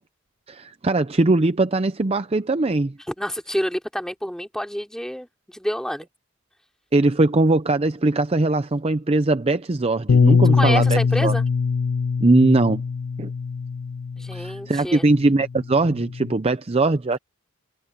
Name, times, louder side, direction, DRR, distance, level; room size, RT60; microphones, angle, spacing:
voice 1, 0.5-2.9 6.9-11.3 12.2-12.8 13.2-13.3 14.3-17.2, right 2 dB, 30° right, 0.6 m, -20 dB
voice 2, 3.1-6.1 10.5-11.4 14.2-15.1, equal, 5° left, 3.1 m, -28 dB
Bass guitar, 10.1-14.6 15.4-16.3, left 5 dB, 60° left, 0.4 m, -21 dB
head